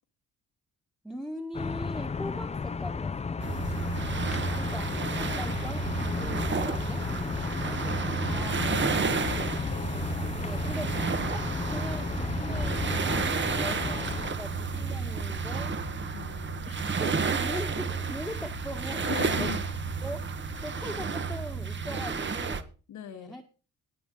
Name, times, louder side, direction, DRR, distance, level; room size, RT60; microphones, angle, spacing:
voice 1, 1.0-3.5 4.5-7.0 9.4-9.6 10.4-11.0 11.3-15.8 16.6-19.1 19.4-19.5 20.0-20.3 20.6-22.7 23.1-23.4, equal, ahead, 2 dB, 1.6 m, -41 dB
sound 1, 1.5-14.3, left 4 dB, 20° left, 0.7 m, -33 dB
sound 2, 3.4-22.6, right 5 dB, 40° right, 1.5 m, -31 dB
voice 2, 3.5-4.6 7.7-10.0 16.1-16.7 19.0-19.6 22.9-23.3, left 10 dB, 75° left, 7 dB, 1.6 m, -41 dB
19.5 x 7.1 x 3.8 m, 0.35 s
cardioid pair, 90°, 30 cm